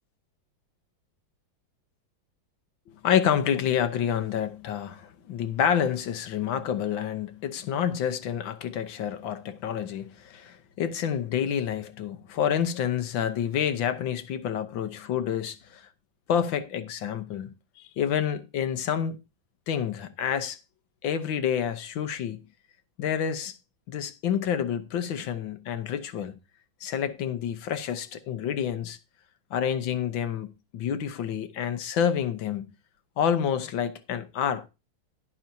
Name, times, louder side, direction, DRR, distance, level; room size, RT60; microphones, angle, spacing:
voice 1, 2.9-15.9 16.3-19.2 19.7-20.6 21.0-22.4 23.0-23.6 23.9-26.4 26.8-29.0 29.5-32.7 33.2-34.7, left 9 dB, 75° left, 1.7 m, -28 dB
11.0 x 10.5 x 2.7 m
omnidirectional pair, 2.1 m